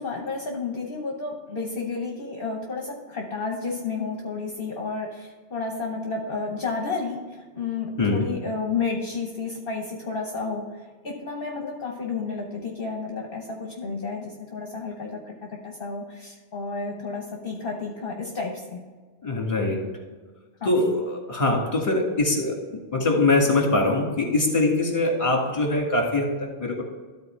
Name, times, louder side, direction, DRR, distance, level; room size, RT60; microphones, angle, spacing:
voice 1, 0.0-18.8 20.6-20.7, left 4 dB, 55° left, 1 dB, 1.1 m, -31 dB
voice 2, 19.2-19.8 20.6-22.6 22.9-26.8, left 2 dB, 30° left, 0 dB, 1.8 m, -23 dB
12.5 x 4.2 x 4.5 m, 1.4 s
omnidirectional pair, 1.2 m